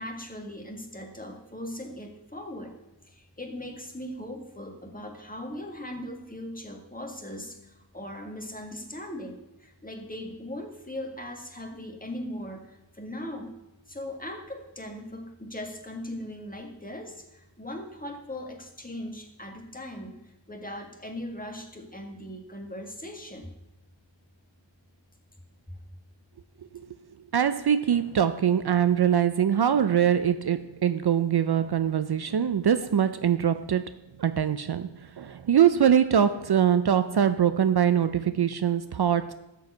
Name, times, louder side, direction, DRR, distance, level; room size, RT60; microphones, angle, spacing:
voice 1, 0.0-2.7 3.1-13.5 13.9-23.5 25.7-25.8, left 1 dB, 20° left, 2 dB, 1.9 m, -39 dB
voice 2, 27.3-33.9 34.2-34.9 35.2-39.3, right 9 dB, 60° right, 12 dB, 0.5 m, -23 dB
12.5 x 4.7 x 8.1 m, 0.92 s
wide cardioid pair, 80°, 45 cm